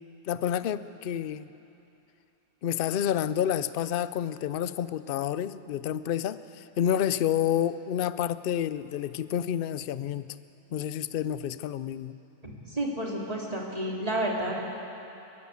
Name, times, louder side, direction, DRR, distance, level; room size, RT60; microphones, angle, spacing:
voice 1, 0.3-1.5 2.6-10.3 10.7-12.2, left 10 dB, 60° left, 14 dB, 0.6 m, -29 dB
voice 2, 12.4-14.8, right 1 dB, 25° right, -3 dB, 3.1 m, -31 dB
29.0 x 11.0 x 8.3 m, 2.9 s
omnidirectional pair, 1.5 m